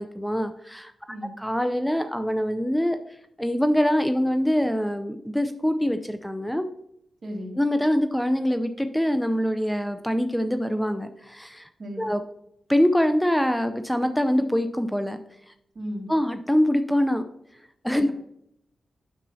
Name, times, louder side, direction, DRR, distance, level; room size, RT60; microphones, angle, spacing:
voice 1, 0.0-0.9 1.4-3.0 3.4-6.7 7.6-11.7 12.0-12.2 12.7-15.2 16.1-17.2 17.8-18.1, equal, 5° left, 9 dB, 0.5 m, -24 dB
voice 2, 7.2-7.6 11.8-12.1 15.7-16.1, equal, 55° right, 0 dB, 2.2 m, -35 dB
9.3 x 6.7 x 2.7 m, 0.78 s
cardioid pair, 55°, 0 cm